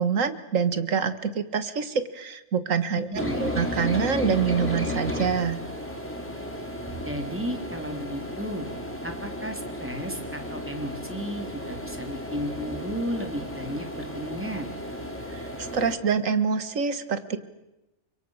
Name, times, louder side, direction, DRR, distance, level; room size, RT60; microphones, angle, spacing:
voice 1, 0.0-5.6 15.3-17.4, right 6 dB, 65° right, 11 dB, 2.0 m, -26 dB
voice 2, 2.9-3.5 7.0-8.7 9.0-14.7, equal, 10° right, 4 dB, 3.5 m, -33 dB
sound 1, 3.1-15.9, equal, 10° left, 4.1 m, -34 dB
29.5 x 25.5 x 6.6 m, 0.95 s
omnidirectional pair, 1.5 m